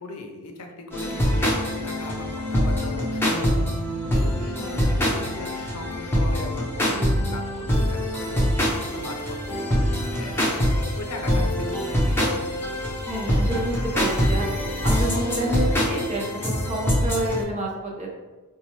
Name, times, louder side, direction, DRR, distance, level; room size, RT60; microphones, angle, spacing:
voice 1, 0.0-3.8 4.4-10.6 11.0-12.2, left 2 dB, 80° left, 3 dB, 0.5 m, -39 dB
sound 1, 0.9-17.4, equal, 10° left, 0.7 m, -24 dB
voice 2, 13.1-14.5 14.8-18.1, right 1 dB, 35° right, -1 dB, 0.7 m, -29 dB
4.2 x 2.3 x 3.0 m, 1.2 s
head